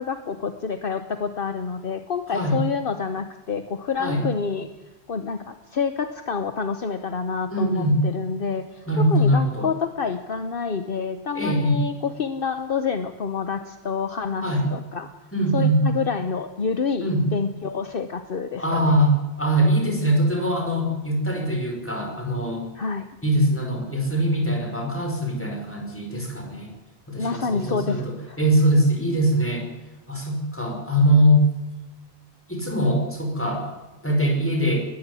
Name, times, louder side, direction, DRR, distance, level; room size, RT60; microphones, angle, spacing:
voice 1, 0.0-4.7 5.1-15.1 15.5-18.9 22.7-23.2 27.2-28.4, left 5 dB, 60° left, 9 dB, 1.2 m, -28 dB
voice 2, 2.3-2.6 4.0-4.2 7.5-8.1 8.9-9.7 11.3-11.8 14.4-14.7 15.3-15.9 17.0-17.3 18.6-22.7 23.2-26.7 27.1-29.7 30.1-31.5 32.5-33.7 34.0-34.9, right 1 dB, 10° left, 1 dB, 5.5 m, -22 dB
20.0 x 14.5 x 9.9 m, 1.1 s
omnidirectional pair, 1.1 m